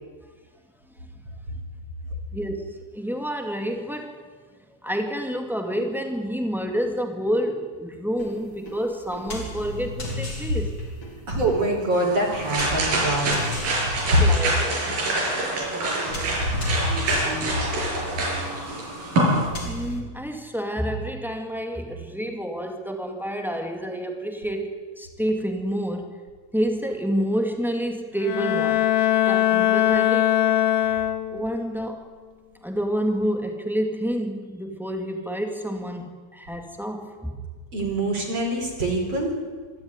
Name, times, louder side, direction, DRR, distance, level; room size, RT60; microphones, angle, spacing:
voice 1, 2.3-4.1 4.8-10.7 14.2-14.7 19.6-26.1 26.5-28.9 29.3-30.3 31.3-32.1 32.6-37.4, equal, ahead, 3 dB, 1.5 m, -28 dB
sound 1, 8.2-20.0, equal, 35° left, 4.0 m, -36 dB
voice 2, 11.3-13.5 14.1-14.2 15.7-16.3 16.6-17.6 37.7-39.4, right 1 dB, 45° right, 0 dB, 5.3 m, -25 dB
sound 2, 11.9-19.5, right 1 dB, 75° right, 7.4 m, -26 dB
Bowed string instrument, 28.2-31.6, left 12 dB, 60° left, 2.2 m, -21 dB
26.0 x 13.0 x 9.8 m, 1.5 s
omnidirectional pair, 4.1 m